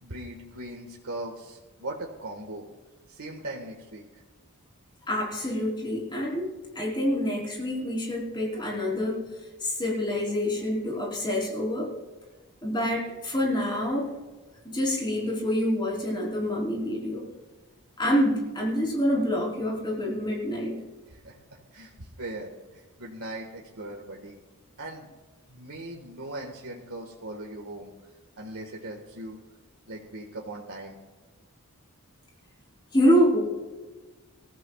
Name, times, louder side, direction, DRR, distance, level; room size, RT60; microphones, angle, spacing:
voice 1, 0.0-2.6 3.1-4.2 21.1-21.4 21.7-24.4 24.8-25.1 25.5-27.9 28.4-29.4 29.9-31.0, right 1 dB, 75° right, -1 dB, 1.7 m, -39 dB
voice 2, 5.1-9.2 9.6-11.9 12.6-14.1 14.6-17.2 18.0-20.8 32.9-33.4, equal, 20° left, -2 dB, 3.8 m, -26 dB
25.5 x 14.5 x 2.4 m, 1.3 s
head